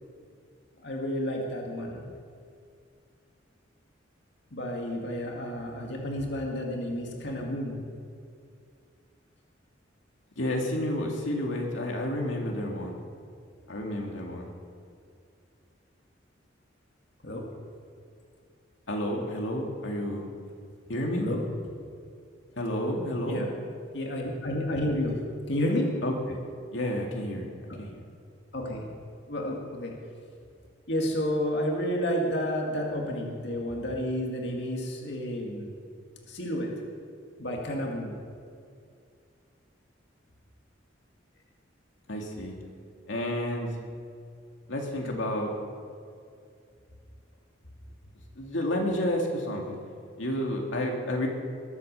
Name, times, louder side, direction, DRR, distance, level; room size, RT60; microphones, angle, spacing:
voice 1, 0.8-2.0 4.5-7.8 17.2-17.4 21.2-21.4 23.2-23.5 23.9-25.9 27.7-27.8 28.5-28.8 29.3-29.9 30.9-35.7 36.3-36.7 37.4-38.2, equal, 60° left, 0 dB, 2.2 m, -31 dB
voice 2, 10.4-13.0 13.7-14.5 18.9-20.3 20.9-21.2 22.6-23.5 26.0-26.4 26.7-27.5 27.8-28.1 42.1-42.5 43.1-43.8 44.7-45.5 48.4-49.8 50.2-51.3, left 1 dB, 80° left, 0 dB, 2.2 m, -30 dB
21.5 x 8.4 x 6.8 m, 2.4 s
head